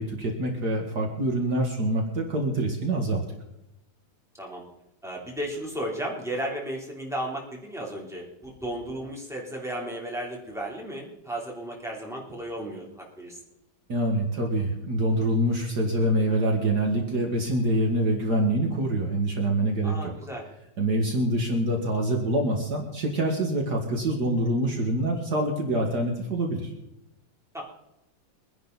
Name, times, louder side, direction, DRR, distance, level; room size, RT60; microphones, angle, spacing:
voice 1, 0.0-3.2 13.9-20.1 20.8-26.7, right 1 dB, 55° right, 2 dB, 2.3 m, -25 dB
voice 2, 5.0-13.4 19.8-20.4 27.5-27.6, right 1 dB, ahead, -2 dB, 3.3 m, -34 dB
23.5 x 10.5 x 4.1 m, 0.89 s
omnidirectional pair, 2.1 m